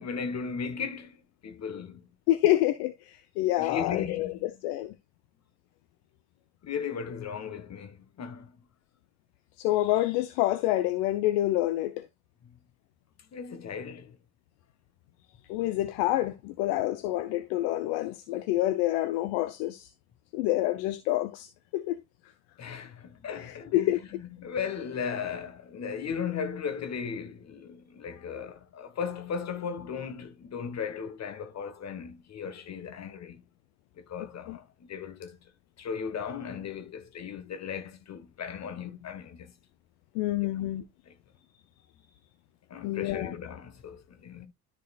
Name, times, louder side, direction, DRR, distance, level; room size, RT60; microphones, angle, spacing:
voice 1, 0.0-2.1 3.6-4.6 6.6-8.6 12.4-12.6 13.3-14.2 22.6-33.4 34.0-35.4 35.8-39.5 40.6-40.7 41.0-41.2 42.7-44.5, left 6 dB, 35° left, 1.5 m, -37 dB
voice 2, 2.3-2.9 3.4-4.3 4.6-4.9 9.6-12.0 15.5-19.9 20.3-21.5 21.7-22.0 23.4-24.0 34.5-34.6 40.2-40.8 42.8-43.3, left 15 dB, 60° left, 0.8 m, -27 dB
13.0 x 4.6 x 2.4 m
hypercardioid pair, 60°, 44 cm